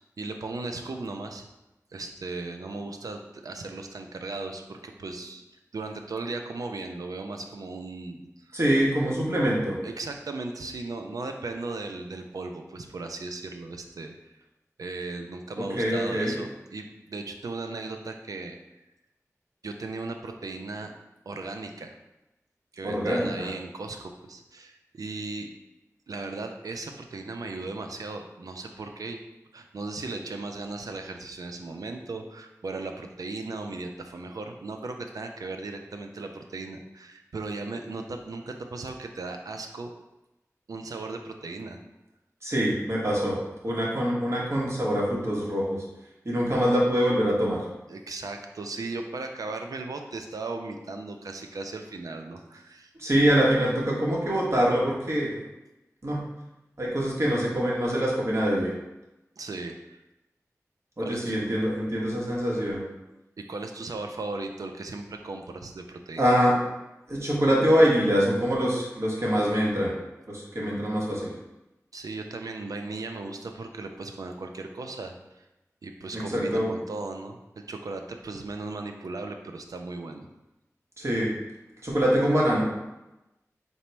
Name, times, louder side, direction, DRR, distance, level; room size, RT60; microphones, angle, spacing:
voice 1, 0.2-1.5 1.9-5.4 5.7-8.6 9.8-14.1 14.8-18.6 19.6-20.9 21.3-21.9 22.7-25.5 26.1-29.2 29.5-39.9 40.7-41.8 47.9-52.9 59.4-60.0 61.0-61.4 63.4-66.2 71.9-75.4 75.8-80.3, right 3 dB, 85° right, 4 dB, 0.4 m, -37 dB
voice 2, 8.5-9.8 15.6-16.3 22.8-23.5 42.4-43.4 43.6-45.8 46.2-47.6 53.0-55.3 56.0-56.2 56.8-58.7 61.0-62.8 66.2-66.6 67.1-69.9 70.3-71.3 76.1-76.7 81.0-81.3 81.8-82.6, equal, 50° right, -5 dB, 1.1 m, -24 dB
4.0 x 2.0 x 4.3 m, 0.98 s
wide cardioid pair, 40°, 6 cm